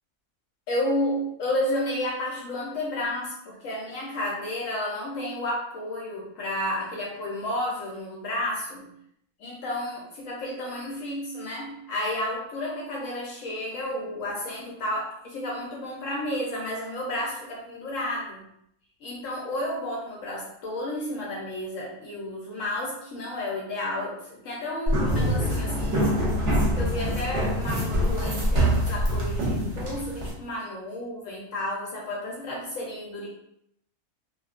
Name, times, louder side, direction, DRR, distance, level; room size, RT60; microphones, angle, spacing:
voice 1, 0.7-8.9 9.4-18.4 19.0-26.1 26.7-33.3, left 1 dB, 65° left, -3 dB, 0.8 m, -31 dB
sound 1, 24.9-30.3, equal, 60° right, 0.9 m, -24 dB
2.7 x 2.3 x 2.3 m, 0.74 s
omnidirectional pair, 1.7 m